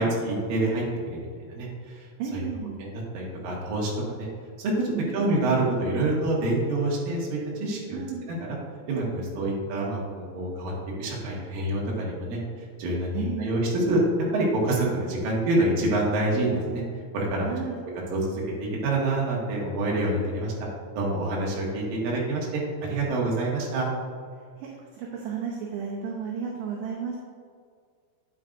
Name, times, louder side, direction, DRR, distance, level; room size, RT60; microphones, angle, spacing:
voice 1, 0.0-2.1 2.3-2.4 2.8-4.3 4.6-8.0 8.2-8.6 8.9-10.7 11.0-12.4 12.8-14.1 14.3-16.8 17.1-17.5 18.1-20.5 21.0-23.9, right 2 dB, 60° right, -4 dB, 2.7 m, -27 dB
voice 2, 2.2-2.8 4.9-5.2 7.9-8.2 13.1-13.5 17.4-17.8 24.6-27.2, right 7 dB, 75° right, -2 dB, 2.7 m, -33 dB
9.7 x 7.8 x 2.6 m, 2.1 s
omnidirectional pair, 5.7 m